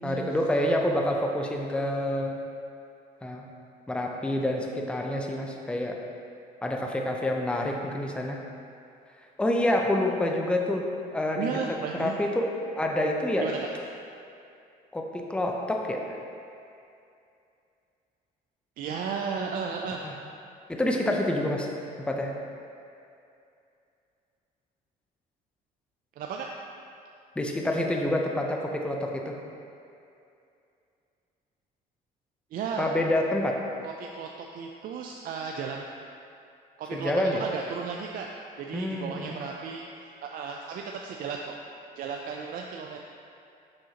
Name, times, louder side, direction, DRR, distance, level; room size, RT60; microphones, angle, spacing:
voice 1, 0.0-2.4 3.2-3.5 3.9-6.0 6.6-8.4 9.4-11.5 11.9-13.5 14.9-16.2 20.0-20.1 20.7-21.7 22.0-22.3 27.4-29.4 32.8-33.6 36.9-37.4 38.7-39.4, left 1 dB, 5° left, 1 dB, 0.5 m, -27 dB
voice 2, 11.4-12.2 13.4-13.7 18.8-20.0 26.2-26.5 32.5-32.9 33.8-35.8 36.8-41.6 42.0-43.0, right 6 dB, 55° right, 1 dB, 0.4 m, -34 dB
6.3 x 6.3 x 2.9 m, 2.5 s
cardioid pair, 110°, 17 cm